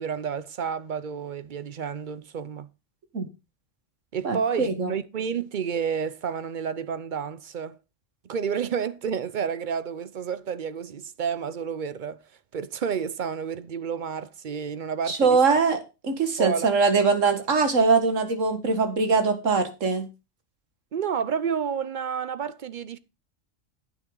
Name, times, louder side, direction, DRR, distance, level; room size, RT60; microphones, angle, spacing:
voice 1, 0.0-2.7 4.1-7.8 8.2-12.2 12.5-15.4 16.4-16.7 20.9-23.0, right 7 dB, 50° right, 0.6 m, -30 dB
voice 2, 4.2-4.9 15.1-20.1, right 4 dB, 80° right, 2.0 m, -22 dB
9.4 x 9.0 x 3.9 m
omnidirectional pair, 1.3 m